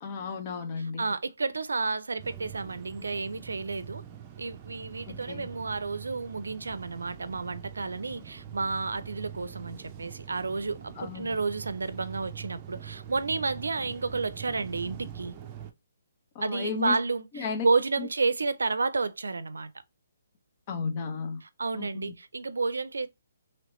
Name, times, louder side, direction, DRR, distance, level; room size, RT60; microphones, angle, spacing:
voice 1, 0.0-1.0 5.1-5.5 11.0-11.3 16.3-17.0 17.3-17.7 18.0-18.1 20.7-21.4 21.7-22.1, left 5 dB, 35° left, 0.9 m, -34 dB
voice 2, 0.8-4.0 4.4-15.3 16.4-19.7 21.4-23.1, right 4 dB, 85° right, 0.4 m, -31 dB
sound 1, 2.2-15.7, right 9 dB, 25° right, 0.6 m, -44 dB
3.0 x 3.0 x 3.0 m
hypercardioid pair, 150°, 0 cm